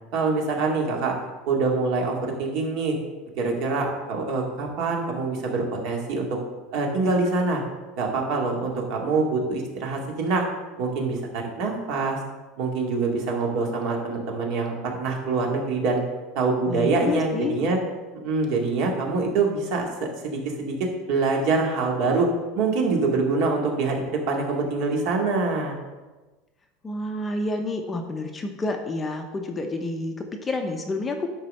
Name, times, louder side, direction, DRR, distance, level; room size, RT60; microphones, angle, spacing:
voice 1, 0.1-1.1 1.5-3.0 3.4-6.4 6.7-7.6 8.0-10.4 10.8-12.2 12.6-16.0 16.4-17.8 18.2-20.7 21.1-22.3 22.6-25.8, right 3 dB, 55° right, 0 dB, 2.0 m, -25 dB
voice 2, 16.7-17.5 26.8-31.3, left 2 dB, 15° left, 4 dB, 0.7 m, -29 dB
10.5 x 3.9 x 6.4 m, 1.2 s
supercardioid pair, 155°, 0 cm